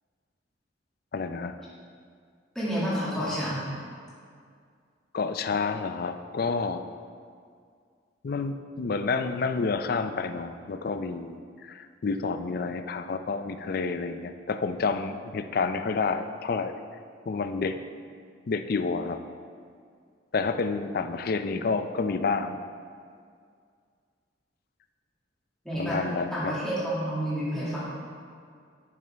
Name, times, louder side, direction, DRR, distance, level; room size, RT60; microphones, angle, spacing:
voice 1, 1.1-1.5 5.1-6.9 8.2-16.8 17.3-17.8 18.5-19.2 20.3-22.6 25.8-26.5, left 4 dB, 50° left, 9 dB, 0.4 m, -29 dB
voice 2, 2.6-3.7 25.6-26.0 26.3-27.8, equal, 5° left, -11 dB, 2.1 m, -29 dB
10.5 x 6.7 x 3.4 m, 2.2 s
head